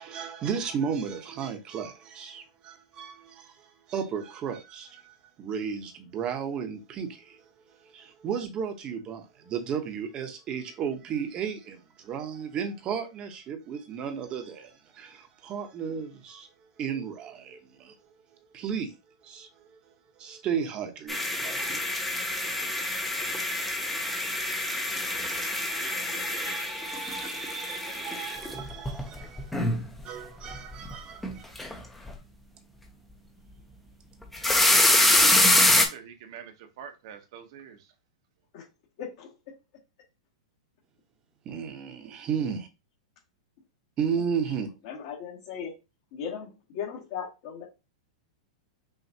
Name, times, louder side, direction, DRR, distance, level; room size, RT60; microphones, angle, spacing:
voice 1, 0.0-7.4 7.8-16.5 16.8-18.0 18.5-18.9 19.2-19.8 20.2-21.9 22.2-29.6 30.0-31.8 41.4-42.7 44.0-44.7, right 7 dB, 25° right, 0.8 m, -35 dB
sound 1, 21.1-30.0 30.4-30.9 31.2-31.8 32.1-32.2 34.2-35.8, left 1 dB, 5° left, 0.6 m, -25 dB
voice 2, 35.6-37.9, right 8 dB, 55° right, 0.9 m, -45 dB
voice 3, 39.0-39.3 44.8-45.7 46.1-47.6, left 7 dB, 55° left, 1.5 m, -37 dB
5.7 x 2.5 x 2.7 m
hypercardioid pair, 145°, 3 cm